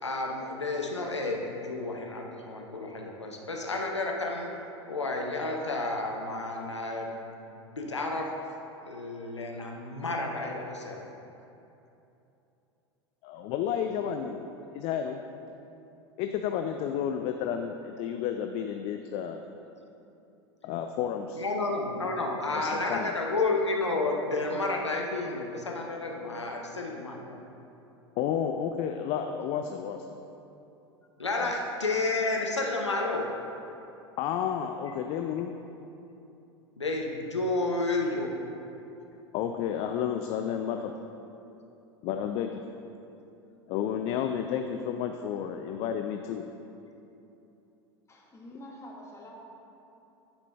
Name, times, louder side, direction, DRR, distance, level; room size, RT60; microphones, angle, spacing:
voice 1, 0.0-4.5 4.9-7.2 7.8-8.3 8.8-11.0 21.3-27.4 31.2-33.3 36.8-38.3, left 2 dB, 90° left, 1 dB, 0.7 m, -31 dB
voice 2, 13.2-15.2 16.2-19.4 20.6-21.4 22.6-23.1 28.2-30.0 31.4-31.5 34.2-35.6 39.3-40.9 42.0-42.6 43.7-46.5, left 8 dB, 45° left, 5 dB, 0.4 m, -31 dB
voice 3, 48.1-49.5, equal, 20° left, -2 dB, 1.4 m, -46 dB
10.0 x 5.0 x 3.3 m, 2.8 s
figure-of-eight pair, 85°, 14 cm